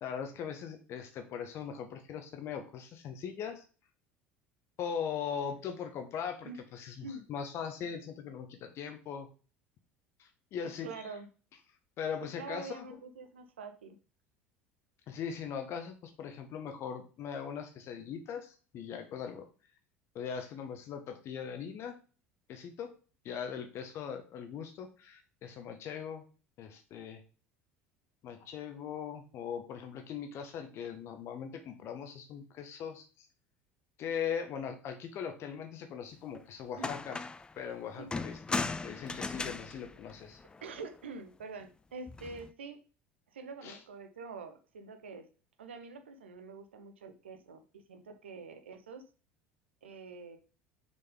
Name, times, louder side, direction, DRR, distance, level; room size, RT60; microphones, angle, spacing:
voice 1, 0.0-3.6 4.8-9.3 10.2-10.9 12.0-12.8 15.1-19.4 20.1-22.0 22.5-22.9 23.2-26.2 26.6-27.2 28.2-33.3 34.0-37.2 37.6-38.6 38.8-40.4 43.6-43.8, left 7 dB, 45° left, 6 dB, 1.2 m, -40 dB
voice 2, 10.8-11.3 12.4-14.0 36.7-36.9 38.0-38.2 40.6-42.8 43.3-45.2 45.6-47.6 47.9-49.0 49.8-50.4, right 4 dB, 75° right, 7 dB, 1.0 m, -45 dB
sound 1, 36.4-36.5 36.8-37.5 38.1-40.8 42.1-42.5, left 3 dB, 15° left, 0.5 m, -37 dB
6.8 x 5.3 x 3.7 m, 0.36 s
figure-of-eight pair, 70°, 6 cm